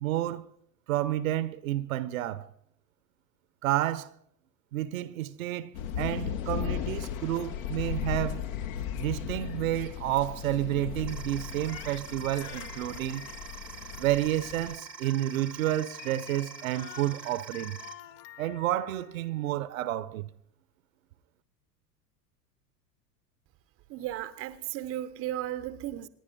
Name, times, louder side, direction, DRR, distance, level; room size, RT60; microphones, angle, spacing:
voice 1, 0.0-0.5 0.9-2.5 3.6-4.1 4.7-8.4 9.0-13.3 14.0-17.8 18.4-20.3, right 14 dB, 55° right, 0.9 m, -30 dB
sound 1, 5.7-14.7, left 9 dB, 55° left, 1.1 m, -36 dB
sound 2, 11.1-17.9, right 6 dB, 90° right, 1.0 m, -45 dB
Crying sobbing, 11.3-19.4, left 13 dB, 35° left, 0.7 m, -49 dB
voice 2, 23.9-26.1, right 13 dB, 25° right, 0.7 m, -35 dB
27.0 x 10.5 x 3.9 m
figure-of-eight pair, 85°, 49 cm